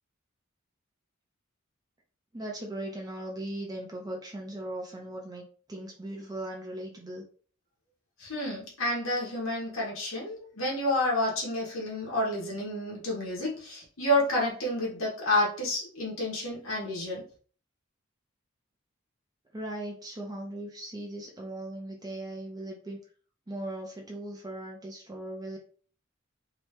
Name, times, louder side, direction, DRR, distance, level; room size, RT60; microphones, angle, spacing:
voice 1, 2.3-7.2 19.5-23.0 23.5-25.6, right 1 dB, 20° right, 0 dB, 0.7 m, -38 dB
voice 2, 8.2-17.2, left 1 dB, 75° left, -4 dB, 1.2 m, -29 dB
3.0 x 2.9 x 3.2 m, 0.42 s
head